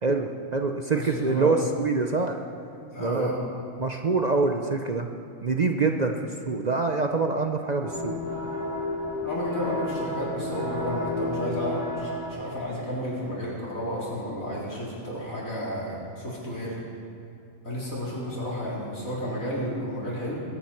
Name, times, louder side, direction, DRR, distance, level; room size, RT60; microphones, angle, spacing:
voice 1, 0.0-2.4 3.0-3.3 3.8-5.1 5.4-6.2 6.5-8.1, right 4 dB, 40° right, 4 dB, 0.7 m, -25 dB
voice 2, 0.9-1.5 2.9-3.4 9.2-16.8 17.6-20.4, equal, 85° left, -6 dB, 4.6 m, -32 dB
sound 1, 7.8-12.8, left 2 dB, 55° left, 3.5 m, -32 dB
21.5 x 9.2 x 5.9 m, 2.7 s
omnidirectional pair, 1.4 m